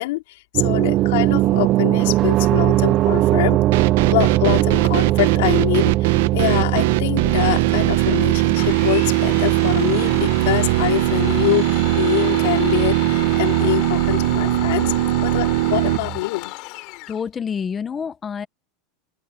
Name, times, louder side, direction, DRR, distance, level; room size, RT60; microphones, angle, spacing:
voice 1, 0.0-3.6 4.1-14.9 15.2-16.6, left 19 dB, 70° left, 4.0 m, -24 dB
sound 1, 0.5-16.2, right 15 dB, 35° right, 0.4 m, -21 dB
sound 2, 3.7-16.0, right 17 dB, 70° right, 0.9 m, -20 dB
Domestic sounds home sounds, 8.6-17.2, left 25 dB, 45° left, 7.7 m, -34 dB
voice 2, 17.1-18.5, left 6 dB, 15° left, 0.8 m, -28 dB
open air
supercardioid pair, 165°, 0 cm